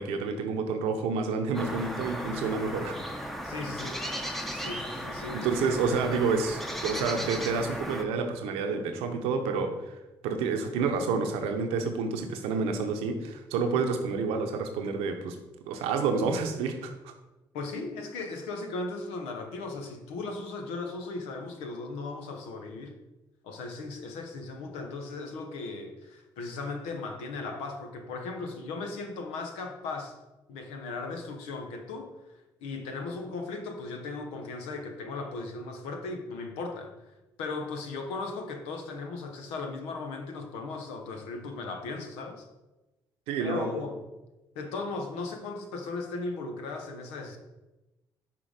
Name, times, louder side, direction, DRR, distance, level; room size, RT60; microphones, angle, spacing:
voice 1, 0.0-3.0 5.3-15.4 15.7-17.1 43.3-43.8, right 4 dB, 85° right, 6 dB, 0.8 m, -29 dB
sound 1, 1.5-8.0, equal, ahead, 0.8 m, -36 dB
voice 2, 3.4-4.0 4.5-5.6 17.5-23.0 23.4-30.1 30.5-32.1 32.6-42.5 43.4-44.0 44.5-47.4, left 3 dB, 85° left, 4 dB, 0.8 m, -37 dB
6.0 x 3.8 x 4.9 m, 1.1 s
supercardioid pair, 60°, 10 cm